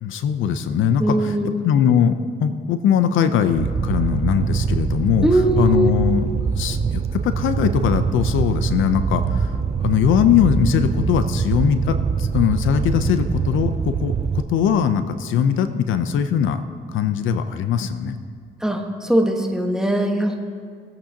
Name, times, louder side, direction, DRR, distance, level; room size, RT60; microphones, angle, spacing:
voice 1, 0.0-1.4 1.6-5.3 5.6-16.6 16.9-18.1, left 8 dB, 80° left, 10 dB, 0.6 m, -20 dB
voice 2, 1.0-1.5 5.2-5.9 18.6-20.3, right 1 dB, 5° right, 2 dB, 1.3 m, -20 dB
Fire, 3.6-14.4, right 6 dB, 30° right, 0.5 m, -23 dB
20.5 x 8.7 x 2.9 m, 2.1 s
cardioid pair, 90°, 20 cm